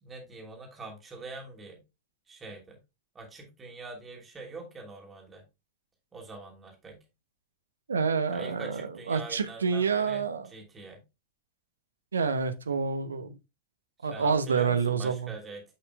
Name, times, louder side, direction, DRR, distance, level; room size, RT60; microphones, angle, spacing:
voice 1, 0.0-1.8 2.3-2.8 3.1-5.4 6.1-7.0 8.3-11.0 14.1-15.7, right 3 dB, 20° right, 2.9 m, -44 dB
voice 2, 7.9-8.8 9.1-10.5 12.1-13.4 14.0-15.3, right 5 dB, 70° right, 0.8 m, -28 dB
9.8 x 5.8 x 2.2 m
figure-of-eight pair, 90°, 0 cm